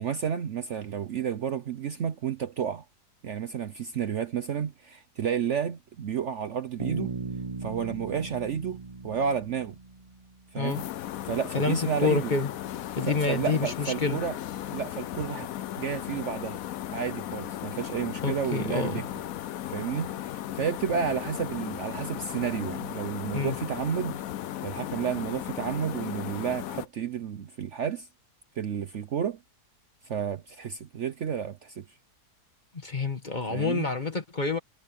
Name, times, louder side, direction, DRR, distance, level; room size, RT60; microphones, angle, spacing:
voice 1, 0.0-2.8 3.2-7.1 7.6-9.8 10.5-10.8 11.2-12.3 13.1-14.4 14.7-15.5 15.8-16.6 16.9-19.1 19.7-24.2 24.6-28.1 28.6-29.4 30.1-31.8 33.5-33.9, right 7 dB, 55° right, 1.0 m, -31 dB
Bass guitar, 6.8-10.5, right 4 dB, 30° right, 0.7 m, -37 dB
sound 1, 10.6-26.9, left 12 dB, 65° left, 1.0 m, -36 dB
voice 2, 11.5-12.5 13.0-14.2 18.2-19.0 23.3-23.6 32.7-34.6, left 4 dB, 30° left, 1.6 m, -28 dB
omnidirectional pair, 1.7 m